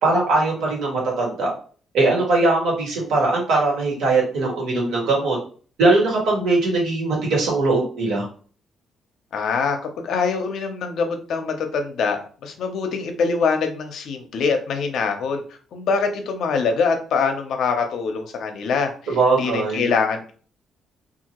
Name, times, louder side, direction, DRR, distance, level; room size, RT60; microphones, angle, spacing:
voice 1, 0.0-1.5 1.9-5.4 5.8-8.3 19.1-19.9, right 3 dB, 80° right, -2 dB, 1.3 m, -20 dB
voice 2, 9.3-18.9 19.4-20.3, left 5 dB, 70° left, 5 dB, 0.6 m, -24 dB
2.8 x 2.4 x 2.9 m, 0.41 s
cardioid pair, 90°, 0 cm